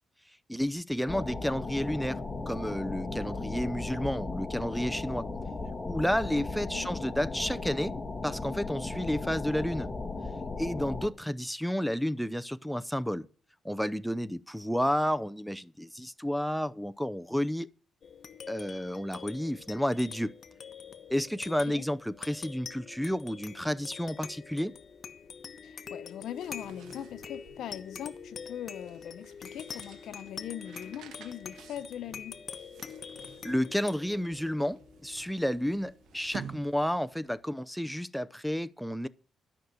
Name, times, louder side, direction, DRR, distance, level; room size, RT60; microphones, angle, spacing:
voice 1, 0.5-2.2 2.5-5.3 5.8-7.9 8.2-9.9 10.6-13.3 13.6-17.7 18.5-20.3 21.1-24.7 33.4-39.1, equal, ahead, 0.6 m, -31 dB
sound 1, 1.1-11.1, left 3 dB, 20° left, 2.0 m, -36 dB
voice 2, 6.2-6.9 21.7-21.8 25.6-32.4, left 10 dB, 80° left, 1.0 m, -41 dB
sound 2, 18.0-36.9, left 6 dB, 50° left, 1.2 m, -45 dB
sound 3, 26.1-37.3, right 8 dB, 85° right, 1.8 m, -51 dB
13.5 x 6.2 x 8.1 m
cardioid pair, 110°, 0 cm